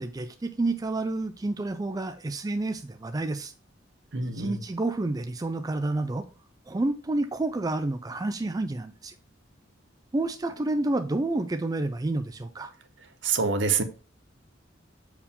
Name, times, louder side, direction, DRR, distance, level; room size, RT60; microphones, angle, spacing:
voice 1, 0.0-3.5 4.2-6.2 6.7-9.1 10.1-12.7, right 2 dB, 20° right, 0.3 m, -29 dB
voice 2, 4.1-4.6 13.2-13.8, right 5 dB, 65° right, 0.8 m, -25 dB
6.9 x 4.7 x 3.6 m
head